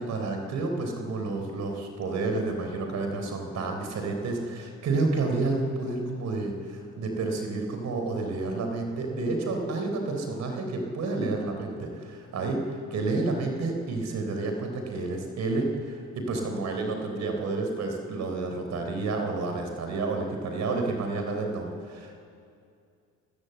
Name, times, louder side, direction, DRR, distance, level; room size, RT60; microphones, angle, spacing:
voice 1, 0.0-22.1, right 3 dB, 55° right, 4 dB, 3.9 m, -30 dB
29.5 x 16.5 x 8.0 m, 2.5 s
cardioid pair, 120°, 32 cm